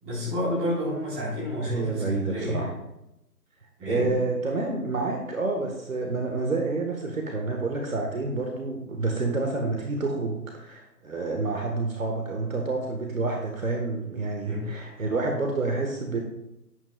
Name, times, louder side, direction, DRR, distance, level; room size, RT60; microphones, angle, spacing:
voice 1, 0.0-2.7 3.8-4.1 14.4-14.6, left 1 dB, 10° right, -9 dB, 4.1 m, -30 dB
voice 2, 1.6-2.7 3.8-16.2, right 3 dB, 55° right, 1 dB, 1.7 m, -28 dB
11.5 x 11.0 x 2.4 m, 0.88 s
figure-of-eight pair, 160°, 49 cm